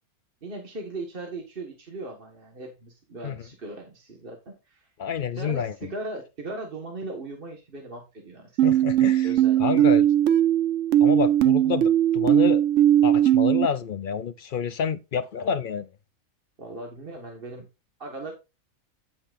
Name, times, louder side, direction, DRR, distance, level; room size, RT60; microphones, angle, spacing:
voice 1, 0.4-4.9 5.4-8.5 9.2-9.7 16.6-17.7 18.0-18.3, right 2 dB, 40° right, 1.7 m, -38 dB
voice 2, 5.0-5.9 8.6-10.1 11.0-12.6 13.0-15.9, left 7 dB, 60° left, 0.5 m, -29 dB
sound 1, 8.6-13.7, right 11 dB, 65° right, 1.0 m, -19 dB
15.0 x 5.8 x 2.5 m
omnidirectional pair, 1.4 m